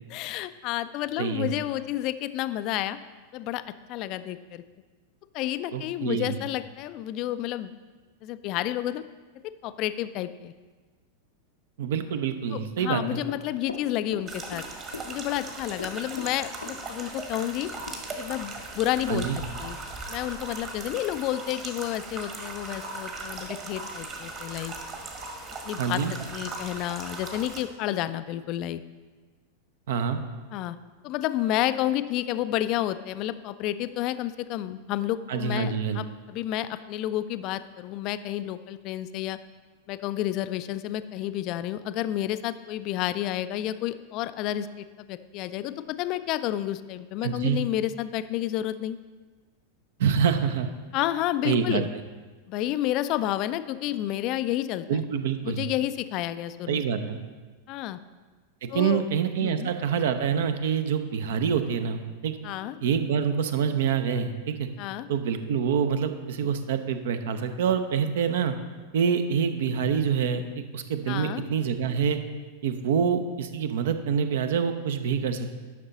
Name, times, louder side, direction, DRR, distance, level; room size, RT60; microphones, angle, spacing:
voice 1, 0.1-3.0 3.3-3.6 3.9-4.6 5.3-7.7 8.2-9.0 9.6-10.5 12.5-14.6 15.1-17.7 18.2-19.3 19.6-19.8 20.1-24.7 25.7-26.0 26.3-28.8 30.5-30.8 31.0-39.4 39.9-49.0 50.9-51.9 52.5-55.0 55.4-56.8 57.7-58.0 58.7-59.0 59.4-59.7 62.4-62.8 64.8-65.1 71.1-71.4, left 13 dB, 40° left, 13 dB, 0.3 m, -30 dB
voice 2, 1.2-1.5 5.7-6.3 11.8-13.2 19.1-19.4 25.8-26.1 29.9-30.2 35.3-36.0 47.2-47.6 50.0-50.7 51.4-51.8 54.9-55.7 56.7-57.2 58.6-62.4 62.8-64.7 65.1-68.5 68.9-70.4 70.7-72.2 72.6-75.5, right 7 dB, 55° right, 9 dB, 0.6 m, -26 dB
Run, 13.3-14.7 14.9-15.5 15.8-17.1 17.4-17.5 17.9-18.0, left 3 dB, 80° left, 0.7 m, -40 dB
sound 1, 14.3-27.6, right 3 dB, 30° right, 1.4 m, -38 dB
11.0 x 6.0 x 4.0 m, 1.4 s
figure-of-eight pair, 90°, 0 cm